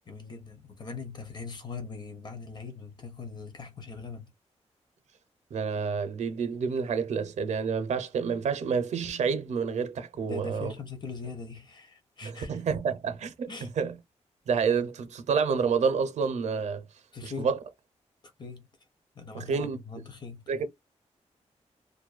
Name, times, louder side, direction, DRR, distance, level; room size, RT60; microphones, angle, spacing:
voice 1, 0.1-4.3 10.2-12.5 13.5-13.7 17.1-17.5 18.4-18.7 19.1-20.4, left 4 dB, 35° left, 0.7 m, -41 dB
voice 2, 5.5-10.7 12.2-13.5 13.8-13.9 14.5-16.8 17.2-17.6 19.3-19.8 20.5-20.6, right 6 dB, 70° right, 0.6 m, -28 dB
2.5 x 2.2 x 2.3 m
wide cardioid pair, 150°, 12 cm